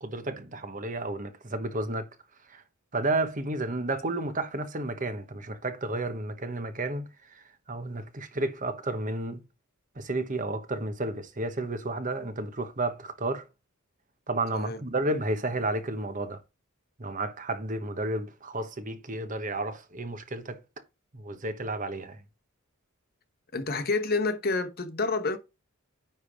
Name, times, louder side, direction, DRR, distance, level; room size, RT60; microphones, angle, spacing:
voice 1, 0.0-2.1 2.5-2.6 2.9-9.4 10.0-13.5 14.3-16.4 17.0-20.6 21.1-22.2, right 2 dB, 40° right, 1.1 m, -32 dB
voice 2, 23.5-25.4, left 3 dB, 45° left, 1.1 m, -28 dB
10.0 x 3.6 x 4.9 m
head